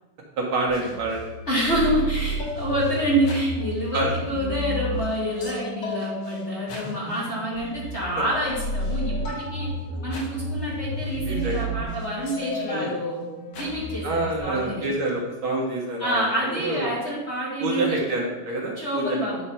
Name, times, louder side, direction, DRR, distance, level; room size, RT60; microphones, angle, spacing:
voice 1, 0.4-1.3 3.9-4.1 9.9-10.0 11.3-11.6 12.7-12.9 14.0-16.9 17.6-19.0, right 2 dB, 60° right, -2 dB, 1.3 m, -27 dB
sound 1, 0.7-14.4, equal, 60° left, 2.0 m, -32 dB
voice 2, 1.5-9.7 10.0-13.2 13.6-14.8 16.0-18.0 18.8-19.4, equal, 30° left, -7 dB, 1.4 m, -27 dB
9.0 x 3.3 x 5.5 m, 1.1 s
omnidirectional pair, 3.7 m